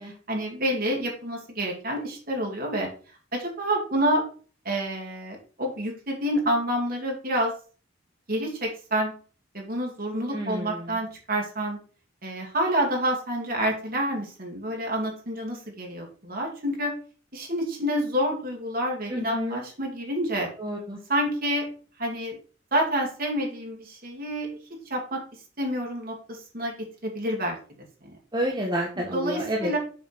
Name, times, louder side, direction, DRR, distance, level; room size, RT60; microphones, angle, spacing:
voice 1, 0.3-2.9 3.3-4.2 4.6-7.5 8.3-9.1 9.5-11.8 12.2-16.9 17.3-20.5 21.1-21.7 22.0-22.4 22.7-25.2 25.6-28.1 29.0-29.8, equal, 50° right, 0 dB, 2.4 m, -28 dB
voice 2, 10.3-11.0 19.1-19.6 20.6-21.0 28.3-29.7, equal, 20° right, -2 dB, 1.2 m, -29 dB
7.1 x 3.6 x 6.1 m, 0.40 s
head